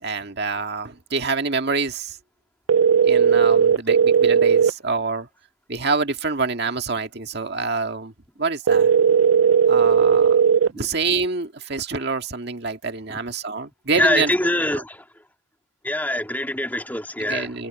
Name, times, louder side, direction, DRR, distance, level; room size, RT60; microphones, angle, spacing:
voice 1, 0.0-2.2 3.1-5.3 5.7-8.1 8.4-8.9 9.7-10.4 10.7-14.3 14.7-14.8 17.2-17.7, right 4 dB, 55° right, 1.9 m, -26 dB
sound 1, 2.7-4.7 8.7-10.7, right 7 dB, 90° right, 0.5 m, -16 dB
voice 2, 13.9-15.0 15.8-17.5, left 1 dB, 10° left, 2.2 m, -23 dB
head